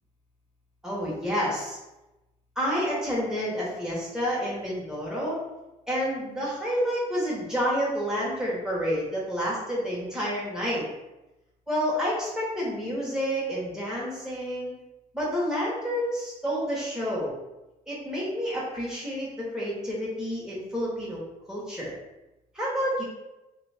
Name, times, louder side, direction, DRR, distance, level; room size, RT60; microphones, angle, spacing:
voice 1, 0.8-1.8 2.6-5.4 5.9-10.9 11.7-14.7 15.1-17.4 17.9-19.3 19.5-21.2 21.5-21.9 22.5-23.0, equal, 5° right, -6 dB, 0.9 m, -29 dB
3.3 x 2.2 x 3.3 m, 1.0 s
cardioid pair, 130°, 15 cm